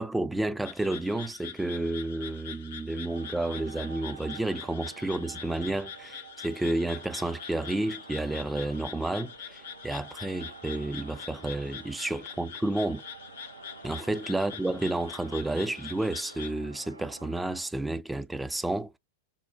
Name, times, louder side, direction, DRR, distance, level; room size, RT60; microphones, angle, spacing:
voice 1, 0.0-13.0 13.8-19.0, right 2 dB, 5° right, 0.4 m, -31 dB
sound 1, 0.6-16.5, left 8 dB, 60° left, 0.7 m, -44 dB
sound 2, 3.1-17.7, right 4 dB, 80° right, 0.5 m, -49 dB
5.6 x 2.1 x 2.5 m
figure-of-eight pair, 95°, 0 cm